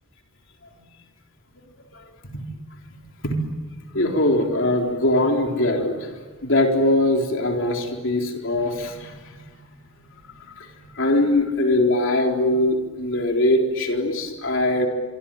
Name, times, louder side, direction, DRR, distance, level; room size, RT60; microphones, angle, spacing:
voice 1, 3.9-6.1 6.4-9.2 10.4-10.7 10.9-14.9, left 1 dB, 60° left, 2 dB, 4.0 m, -21 dB
27.5 x 23.5 x 9.1 m, 1.3 s
head